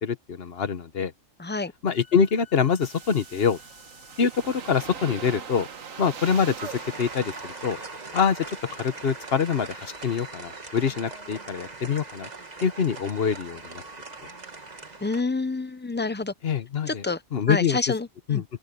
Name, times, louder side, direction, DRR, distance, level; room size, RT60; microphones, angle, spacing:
voice 1, 0.0-1.1 1.8-3.6 4.2-5.7 6.0-6.7 7.0-7.8 8.1-8.4 8.7-12.3 12.6-13.8 14.2-14.3 16.4-17.0 17.3-17.8 18.3-18.4, left 6 dB, 50° left, 1.1 m, -25 dB
voice 2, 1.4-1.7 15.0-16.3 16.9-17.2 17.5-18.4, left 3 dB, 10° left, 0.5 m, -28 dB
Bowed string instrument, 1.9-7.6, left 8 dB, 35° left, 5.6 m, -56 dB
sound 1, 2.8-10.3, right 6 dB, 85° right, 1.7 m, -43 dB
sound 2, 6.6-15.2, right 3 dB, 35° right, 1.7 m, -40 dB
open air
omnidirectional pair, 1.3 m